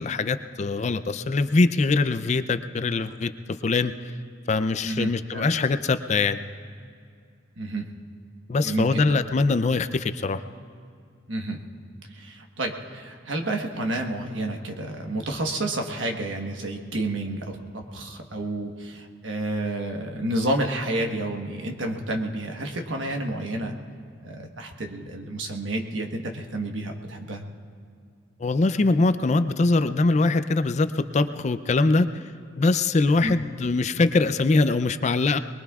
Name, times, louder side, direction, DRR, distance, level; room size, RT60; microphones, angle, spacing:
voice 1, 0.0-3.3 3.6-4.2 4.5-6.4 8.5-10.4 28.4-32.3 32.6-35.4, left 3 dB, 35° left, 11 dB, 0.4 m, -23 dB
voice 2, 4.8-5.4 7.6-7.9 8.6-9.1 11.3-11.6 12.1-23.7 24.2-27.4 33.2-33.3, right 1 dB, 80° right, 2 dB, 1.3 m, -30 dB
23.5 x 21.0 x 2.4 m, 2.2 s
head